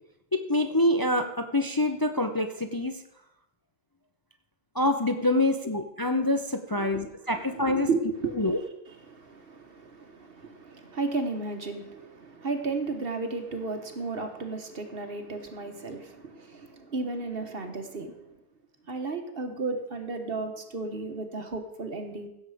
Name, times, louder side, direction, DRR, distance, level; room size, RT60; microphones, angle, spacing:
voice 1, 0.3-2.9 4.7-7.9 8.4-8.6, left 1 dB, 35° left, 6 dB, 0.3 m, -26 dB
voice 2, 7.3-8.6 9.1-18.4 18.8-22.3, right 3 dB, 45° right, 6 dB, 1.3 m, -34 dB
16.5 x 6.7 x 4.9 m, 0.84 s
omnidirectional pair, 1.5 m